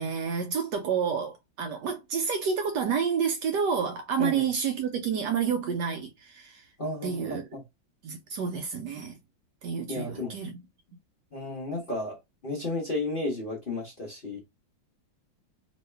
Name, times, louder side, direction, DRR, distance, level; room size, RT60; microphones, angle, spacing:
voice 1, 0.0-6.6 7.0-7.5 8.0-9.2 9.6-10.5, right 6 dB, 70° right, 1.0 m, -29 dB
voice 2, 6.8-7.6 9.9-10.4 11.3-14.4, left 2 dB, 45° left, 0.7 m, -33 dB
3.1 x 2.7 x 3.2 m
omnidirectional pair, 2.2 m